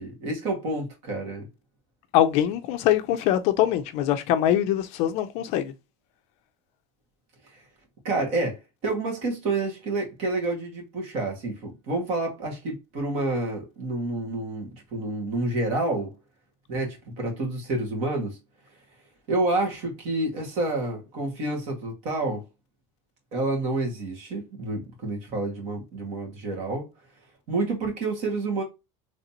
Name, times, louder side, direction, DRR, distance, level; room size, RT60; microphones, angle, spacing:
voice 1, 0.0-1.4 8.0-16.1 16.7-18.4 19.3-22.4 23.3-26.9 27.5-28.6, right 2 dB, 45° right, 1.9 m, -29 dB
voice 2, 2.1-5.7, left 11 dB, 45° left, 0.5 m, -23 dB
3.9 x 3.3 x 2.8 m
cardioid pair, 175°, 15 cm